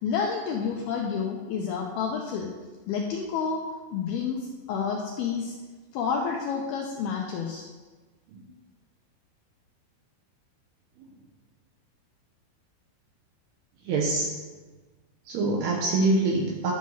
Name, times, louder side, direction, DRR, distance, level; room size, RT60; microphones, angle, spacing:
voice 1, 0.0-2.5 2.9-3.6 3.9-5.5 5.9-7.7, left 6 dB, 80° left, 0 dB, 2.2 m, -29 dB
voice 2, 13.9-14.3 15.3-16.7, right 2 dB, 70° right, -1 dB, 2.8 m, -25 dB
11.5 x 6.3 x 5.6 m, 1.3 s
omnidirectional pair, 5.4 m